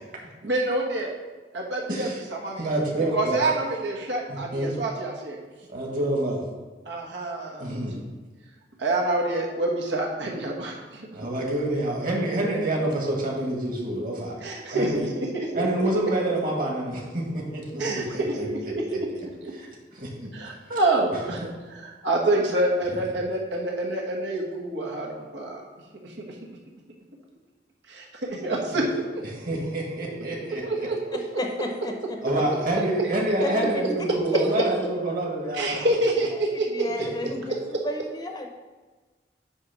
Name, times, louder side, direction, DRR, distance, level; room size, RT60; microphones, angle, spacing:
voice 1, 0.4-1.1 1.5-2.1 2.4-2.6 3.1-5.4 6.8-8.0 8.8-11.1 14.4-16.1 17.8-19.1 19.4-19.5 20.3-25.6 26.0-26.4 27.9-28.9 29.1-29.2 30.5-31.2 33.0-33.1 35.5-36.9, right 2 dB, 90° right, -1 dB, 1.4 m, -27 dB
voice 2, 1.9-2.2 2.6-3.4 4.3-4.7 5.7-6.4 7.6-8.0 11.1-14.4 14.6-15.0 15.5-18.7 19.5-19.7 20.0-20.3 20.7-20.8 29.3-30.9 32.2-35.9 37.0-37.1, right 1 dB, 50° right, -1 dB, 1.9 m, -27 dB
voice 3, 31.4-32.2 33.4-33.9 34.3-34.4 36.7-37.6 37.8-38.5, left 1 dB, 25° left, 2 dB, 0.7 m, -31 dB
9.4 x 3.2 x 6.0 m, 1.3 s
head